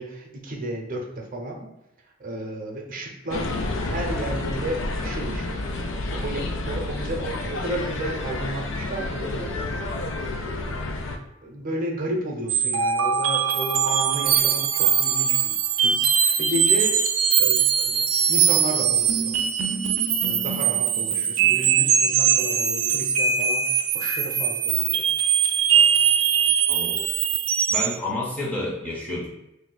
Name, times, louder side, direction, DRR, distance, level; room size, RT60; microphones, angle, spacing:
voice 1, 0.0-1.7 2.2-3.5 3.8-5.7 6.1-9.5 10.3-10.8 11.4-15.5 15.8-17.0 17.4-19.3 20.2-25.0, right 1 dB, 45° right, 0 dB, 0.6 m, -33 dB
sound 1, 3.3-11.2, left 2 dB, 70° left, 0.4 m, -30 dB
sound 2, 12.5-28.0, right 8 dB, 90° right, 0.4 m, -21 dB
voice 2, 26.7-27.1 27.7-29.3, left 1 dB, 10° left, -4 dB, 0.6 m, -30 dB
2.6 x 2.3 x 3.9 m, 0.89 s
head